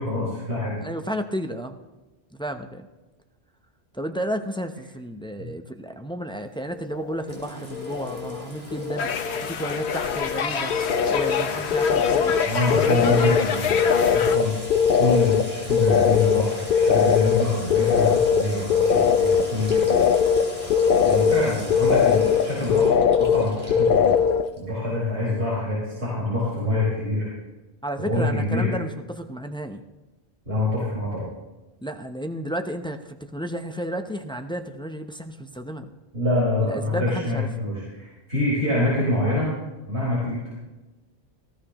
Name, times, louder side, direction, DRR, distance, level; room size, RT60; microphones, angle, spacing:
voice 1, 0.0-0.8 5.4-5.5 12.4-14.5 15.0-20.1 21.0-22.9 23.2-24.1 24.6-27.3 28.0-28.7 30.4-31.2 36.1-39.5 39.8-40.6, left 2 dB, 80° right, -8 dB, 5.0 m, -26 dB
voice 2, 0.8-1.8 2.3-2.9 3.9-10.7 11.1-12.4 12.7-13.5 27.8-29.8 31.8-35.9 36.6-37.5, right 1 dB, 5° left, 6 dB, 0.5 m, -32 dB
sound 1, 6.8-7.4 7.7-8.4 8.7-24.5, left 7 dB, 60° left, 0.8 m, -21 dB
Sink (filling or washing) / Trickle dribble / Fill (with liquid), 7.3-24.7, equal, 35° right, 3.4 m, -40 dB
sound 2, 9.0-14.4, left 6 dB, 80° left, 1.1 m, -28 dB
18.5 x 15.5 x 3.0 m, 1.1 s
omnidirectional pair, 1.1 m